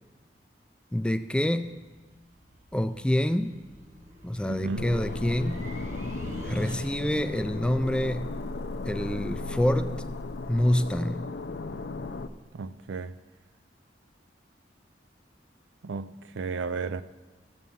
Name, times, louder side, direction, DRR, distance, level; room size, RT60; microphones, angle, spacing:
voice 1, 0.9-1.7 2.7-3.6 4.2-5.7 6.4-8.3 8.9-10.0 10.5-11.3, left 1 dB, 5° left, 0.3 m, -27 dB
sound 1, 1.7-7.3, right 1 dB, 40° right, 1.3 m, -45 dB
voice 2, 4.5-4.9 12.5-13.1 15.8-17.0, right 4 dB, 90° right, 0.5 m, -33 dB
sound 2, 4.8-12.3, left 3 dB, 65° left, 0.5 m, -36 dB
15.0 x 7.3 x 5.5 m
head